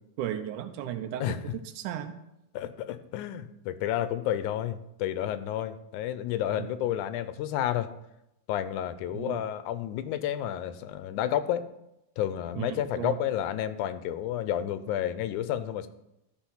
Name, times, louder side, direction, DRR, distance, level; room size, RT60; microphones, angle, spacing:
voice 1, 0.2-2.2 6.6-6.7 9.1-9.4 12.6-13.2, right 11 dB, 90° right, 9 dB, 2.3 m, -35 dB
voice 2, 2.5-7.9 8.5-11.7 12.2-15.9, left 11 dB, 90° left, 12 dB, 2.1 m, -31 dB
13.5 x 4.5 x 5.6 m, 0.87 s
omnidirectional pair, 3.4 m